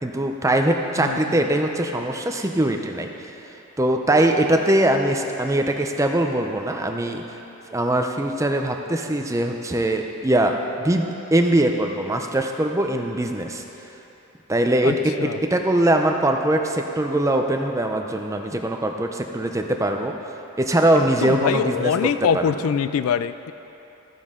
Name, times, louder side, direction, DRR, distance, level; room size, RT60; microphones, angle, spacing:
voice 1, 0.0-3.1 3.8-7.2 7.7-13.6 14.5-20.1 20.6-22.5, right 1 dB, 15° right, 4 dB, 0.5 m, -22 dB
voice 2, 1.0-1.4 14.8-15.4 21.0-23.5, left 7 dB, 75° left, 13 dB, 0.3 m, -24 dB
14.0 x 9.4 x 3.7 m, 3.0 s
head